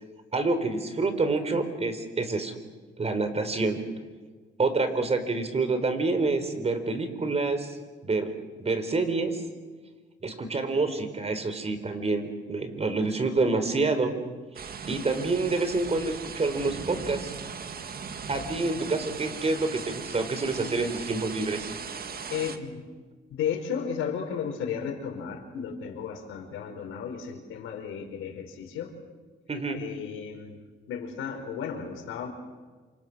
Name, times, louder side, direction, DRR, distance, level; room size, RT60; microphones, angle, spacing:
voice 1, 0.3-2.5 3.0-3.8 4.6-7.8 8.0-8.3 8.6-9.4 10.2-14.1 14.9-17.3 18.3-21.7 29.5-29.8, right 3 dB, 30° right, 8 dB, 4.3 m, -27 dB
sound 1, 14.6-22.6, right 6 dB, 50° right, 1.9 m, -38 dB
voice 2, 22.3-22.8 23.3-28.9 29.7-30.6 30.9-32.3, left 7 dB, 90° left, 4 dB, 5.0 m, -34 dB
28.5 x 25.5 x 6.3 m, 1.4 s
cardioid pair, 90°, 20 cm